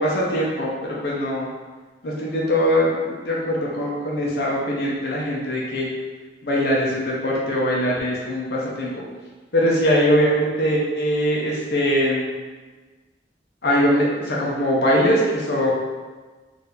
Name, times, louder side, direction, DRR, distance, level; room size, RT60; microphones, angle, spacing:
voice 1, 0.0-1.5 2.0-5.9 6.4-8.9 9.5-12.3 13.6-15.7, equal, 65° left, -4 dB, 0.7 m, -21 dB
4.3 x 2.7 x 3.8 m, 1.4 s
head